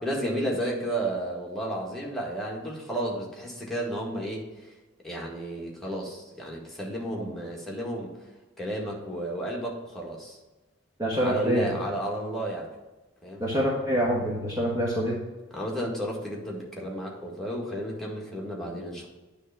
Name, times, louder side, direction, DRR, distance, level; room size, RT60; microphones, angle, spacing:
voice 1, 0.0-4.5 5.0-8.1 8.6-10.4 11.2-12.7 13.2-13.4 15.5-19.1, right 1 dB, ahead, -3 dB, 1.7 m, -32 dB
voice 2, 11.0-11.7 13.4-15.1, equal, 15° right, -4 dB, 1.1 m, -26 dB
9.8 x 3.4 x 5.6 m, 1.2 s
head